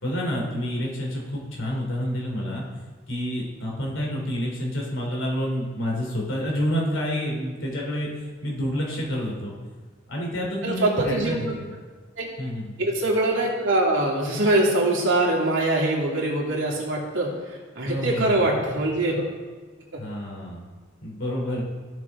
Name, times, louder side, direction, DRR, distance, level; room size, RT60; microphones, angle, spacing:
voice 1, 0.0-2.6 3.1-8.1 8.4-9.5 10.1-11.7 12.4-12.7 17.9-18.3 20.0-20.7 21.0-21.6, equal, 80° left, -2 dB, 3.0 m, -28 dB
voice 2, 10.6-11.5 12.2-12.3 12.8-19.3 19.9-20.0, right 2 dB, 80° right, -3 dB, 2.8 m, -23 dB
15.5 x 6.9 x 3.6 m, 1.4 s
head